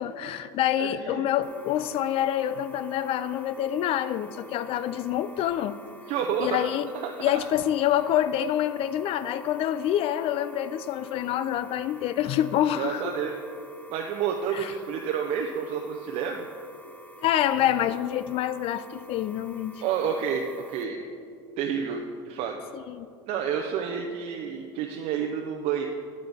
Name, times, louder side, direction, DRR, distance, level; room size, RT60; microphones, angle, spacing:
voice 1, 0.0-5.8 6.4-6.9 7.2-13.1 14.5-14.7 17.2-19.8 22.7-23.1, left 11 dB, 50° left, 14 dB, 0.4 m, -27 dB
voice 2, 0.8-1.2 6.1-6.6 7.0-7.5 12.7-13.3 13.9-16.5 19.8-21.0 21.6-22.6 23.3-25.8, right 7 dB, 55° right, 2 dB, 0.6 m, -29 dB
sound 1, 1.4-20.8, right 1 dB, 15° left, 1.0 m, -49 dB
9.7 x 8.1 x 3.5 m, 2.3 s
hypercardioid pair, 85°, 13 cm